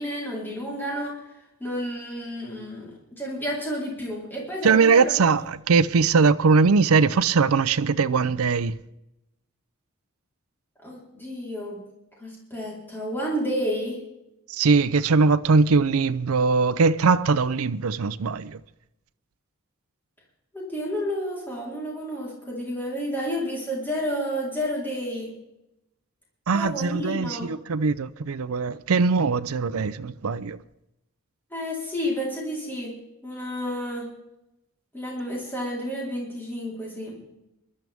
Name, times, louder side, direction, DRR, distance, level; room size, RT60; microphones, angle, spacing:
voice 1, 0.0-1.3 1.6-5.4 10.8-11.8 12.2-14.0 20.5-25.3 26.5-27.5 31.5-32.9 33.2-34.1 34.9-37.2, equal, 10° left, 3.8 m, -31 dB
voice 2, 4.6-8.8 14.5-18.6 26.5-30.6, right 4 dB, 80° right, 0.5 m, -21 dB
22.0 x 12.0 x 3.5 m
head